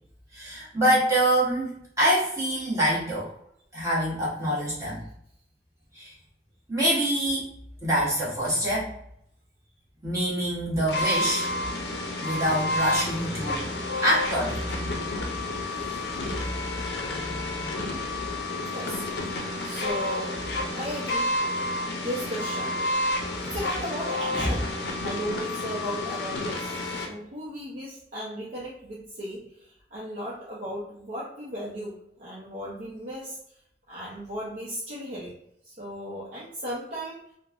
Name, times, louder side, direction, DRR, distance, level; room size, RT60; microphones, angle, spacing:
voice 1, 0.3-1.7 2.0-3.3 3.7-5.0 5.9-6.1 6.7-7.5 7.8-8.9 10.0-11.5 12.2-13.7 14.0-15.1 17.1-17.8 24.3-24.6, right 1 dB, 20° right, -7 dB, 1.0 m, -25 dB
sound 1, 10.9-27.1, left 1 dB, 65° left, 0.5 m, -30 dB
voice 2, 18.6-20.4 20.7-21.3 22.0-23.1 23.5-24.7 25.0-33.4 33.9-35.4 35.6-37.2, equal, 55° right, -7 dB, 0.7 m, -36 dB
3.0 x 2.1 x 2.4 m, 0.72 s
head